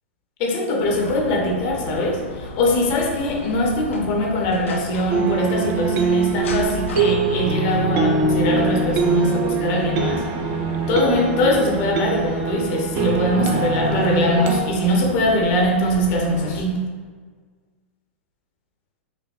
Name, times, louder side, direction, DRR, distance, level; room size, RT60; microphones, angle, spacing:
voice 1, 0.4-10.2 10.9-16.7, left 1 dB, 45° left, 1 dB, 0.7 m, -21 dB
sound 1, 0.8-16.6, left 3 dB, 75° left, 0.4 m, -35 dB
sound 2, 5.1-14.6, right 4 dB, 40° right, 0.3 m, -23 dB
5.0 x 2.1 x 2.3 m, 1.5 s
figure-of-eight pair, 100°, 7 cm